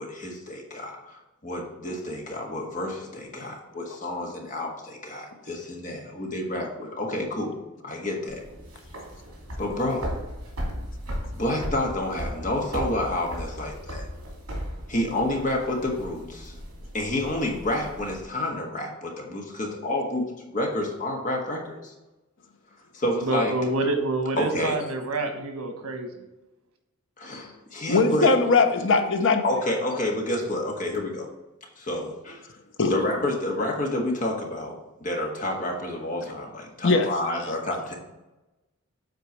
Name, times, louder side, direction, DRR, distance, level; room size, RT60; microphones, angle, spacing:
voice 1, 0.0-7.6 7.8-8.4 9.6-10.1 11.3-14.1 14.9-16.5 16.9-21.9 22.9-23.5 24.4-24.8 27.2-28.3 29.4-31.3 31.8-32.4 32.9-38.0, left 1 dB, 35° left, 0 dB, 1.5 m, -29 dB
sound 1, 8.3-18.2, equal, 70° right, 2.7 m, -36 dB
voice 2, 23.2-26.1, right 2 dB, 90° right, 5 dB, 1.3 m, -27 dB
voice 3, 27.9-29.4 32.8-32.9 36.8-37.1, left 4 dB, 60° left, 6 dB, 0.8 m, -20 dB
7.9 x 4.5 x 4.5 m, 1.0 s
head